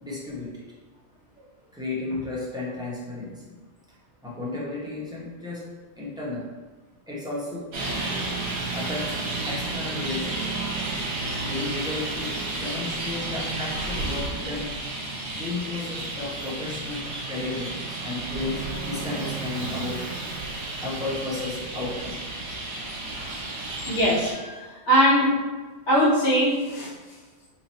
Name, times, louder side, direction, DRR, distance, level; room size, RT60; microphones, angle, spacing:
voice 1, 0.0-0.6 1.7-3.6 4.2-5.6 6.0-6.5 7.1-7.7 8.7-10.6 11.4-14.7 15.3-20.0 20.8-22.2, left 2 dB, 5° right, -7 dB, 0.6 m, -33 dB
Traffic noise roadway noise, 7.7-24.3, right 2 dB, 70° right, 1.0 m, -32 dB
voice 2, 23.9-25.3 25.9-26.9, equal, 80° left, -6 dB, 1.4 m, -21 dB
2.9 x 2.7 x 4.1 m, 1.3 s
omnidirectional pair, 1.2 m